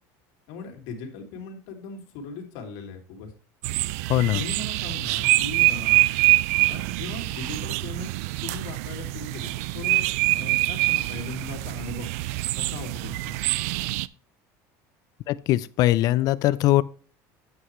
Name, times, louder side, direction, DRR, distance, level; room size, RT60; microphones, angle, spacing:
voice 1, 0.5-3.3 4.1-6.0 6.7-8.2 8.4-12.1 12.6-13.4, left 4 dB, 70° left, 2.9 m, -39 dB
sound 1, 3.6-14.1, right 20 dB, 85° right, 0.4 m, -25 dB
voice 2, 4.1-4.4 15.3-16.8, left 15 dB, 50° left, 0.5 m, -21 dB
9.4 x 8.0 x 3.2 m
cardioid pair, 140°, 8 cm